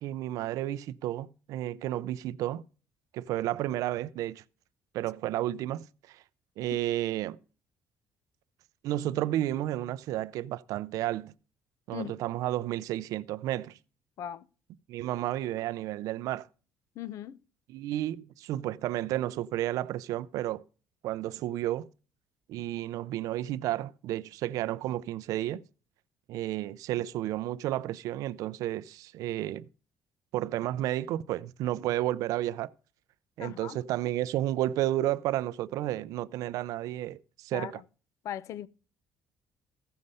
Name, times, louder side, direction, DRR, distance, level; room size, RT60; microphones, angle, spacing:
voice 1, 0.0-2.6 3.1-4.4 4.9-6.2 6.6-7.4 8.8-11.3 11.9-13.8 14.9-16.5 17.7-20.6 21.0-21.9 22.5-25.6 26.3-29.7 30.3-32.7 33.4-37.8, right 14 dB, 75° right, 0.5 m, -32 dB
voice 2, 17.0-17.4 33.4-33.8 37.5-37.8 38.2-38.7, left 11 dB, 60° left, 0.6 m, -38 dB
15.0 x 6.5 x 5.5 m
cardioid pair, 140°, 6 cm